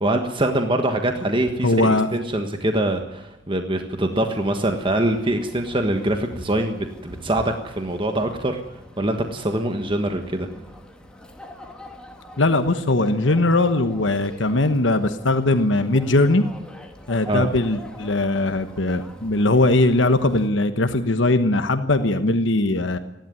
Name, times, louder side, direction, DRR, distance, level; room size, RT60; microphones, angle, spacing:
voice 1, 0.0-8.6 9.0-10.5 17.3-17.5, right 1 dB, 25° right, 5 dB, 1.4 m, -24 dB
voice 2, 1.6-2.1 12.4-16.4 17.1-23.0, left 2 dB, 70° left, 9 dB, 1.2 m, -20 dB
sound 1, 4.1-20.5, left 1 dB, 5° left, 2.5 m, -44 dB
29.0 x 12.0 x 9.4 m, 1.0 s
head